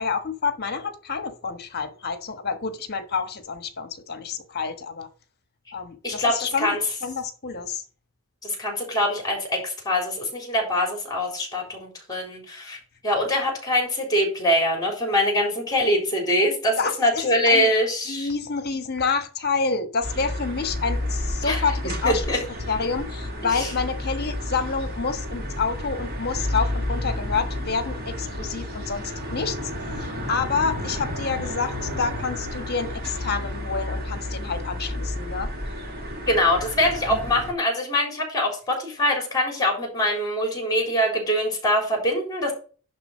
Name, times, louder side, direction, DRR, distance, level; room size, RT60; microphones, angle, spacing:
voice 1, 0.0-5.1 5.7-7.8 13.4-13.5 16.8-17.7 18.1-22.2 22.7-35.5, left 5 dB, 45° left, 1.3 m, -28 dB
voice 2, 6.0-6.8 8.4-18.3 21.4-21.6 22.0-22.4 23.5-23.7 36.3-42.5, left 1 dB, 15° left, 3.7 m, -23 dB
sound 1, 20.0-37.5, left 1 dB, 45° right, 2.5 m, -31 dB
11.0 x 3.8 x 6.3 m
head